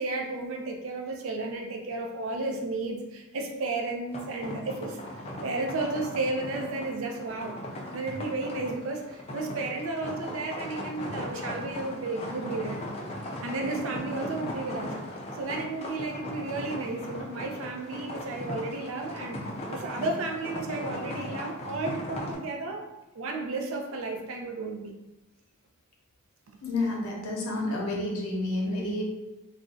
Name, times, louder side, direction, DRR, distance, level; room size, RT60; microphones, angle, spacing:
voice 1, 0.0-5.0 5.4-7.6 7.9-12.8 13.4-15.0 15.3-19.4 19.7-22.9 23.1-24.9, right 3 dB, 65° right, 3 dB, 0.5 m, -33 dB
sound 1, 4.1-22.3, left 1 dB, 30° left, 0.4 m, -38 dB
voice 2, 26.6-29.0, left 2 dB, 85° left, -1 dB, 0.7 m, -30 dB
2.4 x 2.1 x 3.7 m, 1.0 s
head